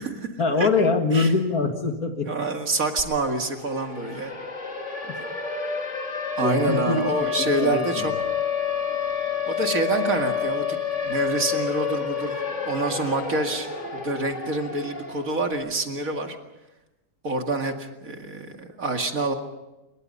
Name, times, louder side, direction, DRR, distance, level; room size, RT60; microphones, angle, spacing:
voice 1, 0.4-2.3 5.1-5.2 6.4-7.1 7.4-8.1, left 3 dB, 60° left, 5 dB, 2.7 m, -23 dB
voice 2, 2.3-4.3 6.4-8.1 9.5-10.8 11.0-12.4 12.6-16.4 17.2-19.3, right 2 dB, 55° right, 4 dB, 2.5 m, -27 dB
Siren, 3.0-3.1 3.4-15.4, left 7 dB, 45° left, 2.9 m, -29 dB
27.5 x 23.0 x 5.6 m, 0.99 s
omnidirectional pair, 1.7 m